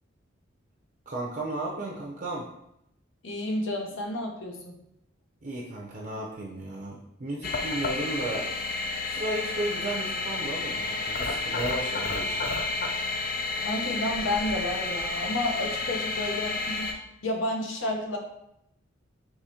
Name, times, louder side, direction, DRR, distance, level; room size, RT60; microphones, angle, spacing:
voice 1, 1.1-2.5 5.4-8.5 9.0-12.5, right 1 dB, 40° right, -3 dB, 0.5 m, -34 dB
voice 2, 3.2-4.8 13.6-16.9 17.2-18.2, left 1 dB, 75° left, 2 dB, 0.8 m, -31 dB
sound 1, 7.4-16.9, left 3 dB, 45° left, 0.4 m, -31 dB
4.8 x 3.0 x 2.8 m, 0.80 s
head